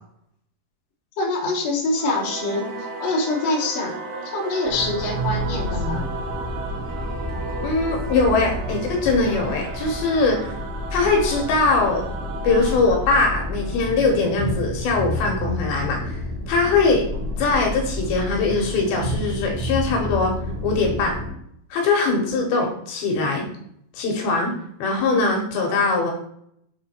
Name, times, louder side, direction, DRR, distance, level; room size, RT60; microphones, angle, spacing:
voice 1, 1.2-2.7 3.0-3.9 4.3-6.1, left 2 dB, 50° left, -3 dB, 2.2 m, -24 dB
Singing / Musical instrument, 1.9-14.8, right 3 dB, 90° right, 3.1 m, -35 dB
sound 1, 4.7-21.3, left 1 dB, 35° right, 1.8 m, -30 dB
voice 2, 7.6-10.5 10.9-12.0 12.4-17.1 17.4-20.3 20.6-21.2 21.7-23.5 23.9-24.5 24.8-26.1, left 3 dB, 75° left, 1 dB, 2.8 m, -21 dB
6.6 x 3.7 x 4.3 m, 0.71 s
omnidirectional pair, 4.5 m